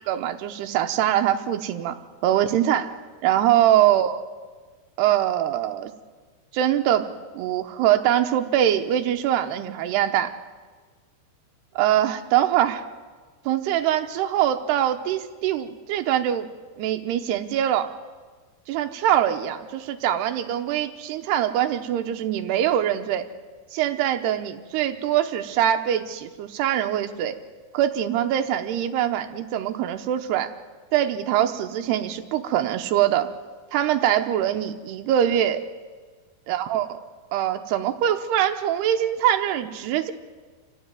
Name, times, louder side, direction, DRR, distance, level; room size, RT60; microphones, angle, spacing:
voice 1, 0.1-2.0 2.2-2.9 3.2-4.2 5.0-5.9 6.5-7.1 7.3-10.3 11.8-12.8 13.5-16.5 16.8-17.9 18.7-23.3 23.7-27.4 27.7-30.5 30.9-33.3 33.7-35.6 36.5-36.9 37.3-40.1, right 11 dB, 75° right, 7 dB, 2.6 m, -23 dB
27.0 x 15.0 x 9.1 m, 1.4 s
omnidirectional pair, 5.5 m